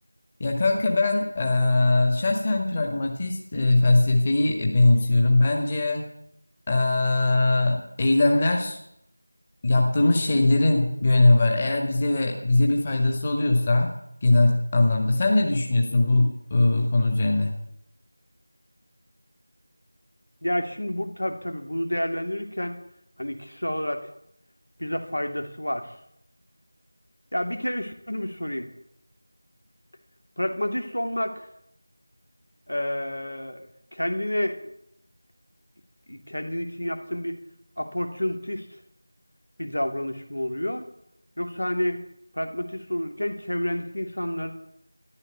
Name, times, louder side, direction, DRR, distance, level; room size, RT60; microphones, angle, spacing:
voice 1, 0.4-6.1 6.7-8.8 9.6-13.9 14.2-17.5, left 2 dB, 25° left, 2 dB, 1.8 m, -21 dB
voice 2, 20.4-22.8 23.2-24.1 24.8-25.9 27.3-28.7 30.4-31.5 32.7-33.6 33.9-34.6 36.1-37.4 37.8-38.7 39.6-40.9 41.4-42.0 42.3-44.5, left 1 dB, 75° left, 5 dB, 3.0 m, -29 dB
14.0 x 11.5 x 8.3 m, 0.73 s
figure-of-eight pair, 170°, 0 cm